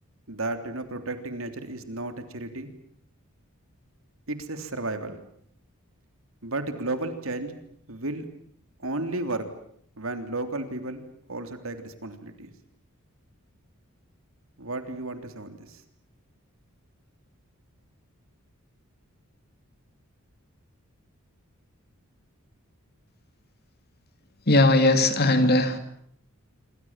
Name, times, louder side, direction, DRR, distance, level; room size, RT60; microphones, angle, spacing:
voice 1, 0.3-2.7 4.3-5.2 6.4-7.6 7.9-8.2 8.8-9.5 10.0-11.0 11.3-12.5 14.6-15.8, right 2 dB, 65° right, 8 dB, 3.3 m, -33 dB
voice 2, 24.5-25.8, left 2 dB, 45° left, 9 dB, 2.8 m, -19 dB
27.0 x 25.0 x 7.5 m, 0.67 s
head